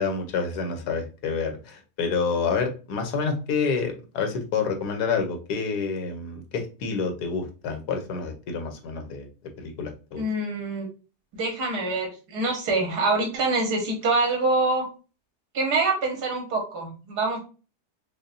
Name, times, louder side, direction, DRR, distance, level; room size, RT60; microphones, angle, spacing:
voice 1, 0.0-9.3 9.6-10.2, left 5 dB, 80° left, 5 dB, 1.3 m, -28 dB
voice 2, 10.2-10.9 11.3-14.9 15.5-17.4, right 3 dB, 90° right, 2 dB, 1.7 m, -25 dB
5.4 x 2.1 x 2.5 m, 0.34 s
omnidirectional pair, 1.7 m